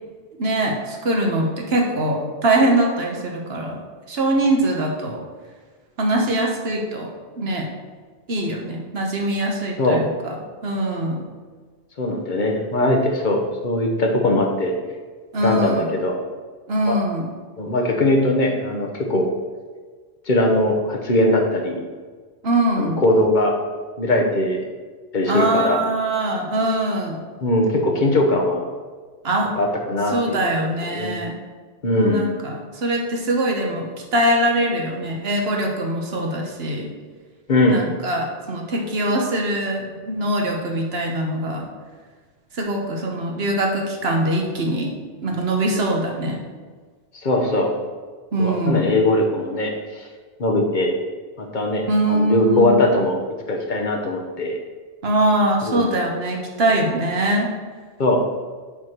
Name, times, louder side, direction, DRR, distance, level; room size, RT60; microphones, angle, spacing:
voice 1, 0.4-3.8 4.1-5.2 6.0-7.1 7.4-7.7 8.3-10.3 10.6-11.2 15.3-15.9 16.7-17.3 22.4-23.0 25.3-27.2 29.2-29.5 30.1-31.4 31.9-36.9 37.7-41.7 42.5-44.9 45.2-46.4 48.3-49.0 51.9-52.8 55.0-57.5, right 1 dB, 75° right, 1 dB, 1.3 m, -22 dB
voice 2, 12.0-14.8 15.4-16.1 16.9-17.0 17.6-19.3 20.3-21.8 22.8-23.5 24.0-24.6 25.1-25.8 27.4-28.6 29.6-30.4 30.9-31.2 31.8-32.3 37.5-37.9 47.1-47.7 48.4-50.1 50.4-51.0 51.4-53.2 53.5-54.6 55.7-55.9 58.0-58.2, left 1 dB, 50° left, 2 dB, 1.0 m, -20 dB
5.6 x 4.7 x 6.0 m, 1.5 s
omnidirectional pair, 1.0 m